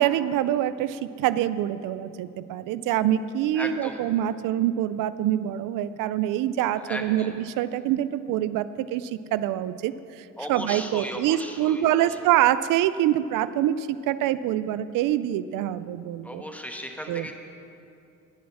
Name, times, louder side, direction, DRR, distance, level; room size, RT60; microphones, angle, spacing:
voice 1, 0.0-16.4 17.1-17.3, right 12 dB, 90° right, 15 dB, 0.5 m, -25 dB
voice 2, 3.6-4.0 6.8-7.3 10.4-12.1 16.2-17.3, equal, 5° left, 3 dB, 1.3 m, -36 dB
19.0 x 6.3 x 6.0 m, 2.7 s
cardioid pair, 115°, 31 cm